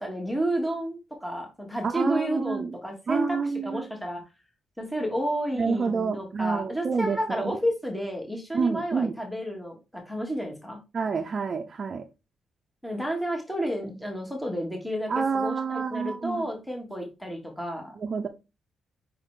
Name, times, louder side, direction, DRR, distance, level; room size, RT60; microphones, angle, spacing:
voice 1, 0.0-3.4 3.6-4.2 4.8-10.8 12.8-17.9, equal, 5° left, 1.3 m, -31 dB
voice 2, 1.8-2.7 3.1-3.9 5.6-7.6 8.5-9.1 10.9-12.1 15.1-16.5 18.0-18.3, right 5 dB, 35° right, 0.6 m, -28 dB
5.3 x 4.0 x 4.8 m
wide cardioid pair, 175°, 0 cm